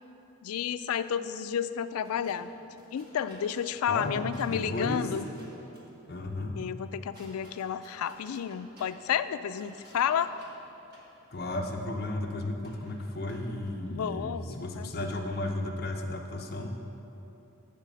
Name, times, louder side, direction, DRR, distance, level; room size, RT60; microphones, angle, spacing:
voice 1, 0.4-2.5 2.9-5.3 6.5-10.3 13.9-15.2, left 8 dB, 85° left, 13 dB, 0.3 m, -31 dB
sound 1, 2.0-14.0, equal, 45° right, 1.4 m, -57 dB
voice 2, 3.9-5.1 6.1-6.6 11.3-16.7, left 2 dB, 45° left, 2 dB, 0.8 m, -34 dB
10.5 x 4.2 x 7.4 m, 2.9 s
head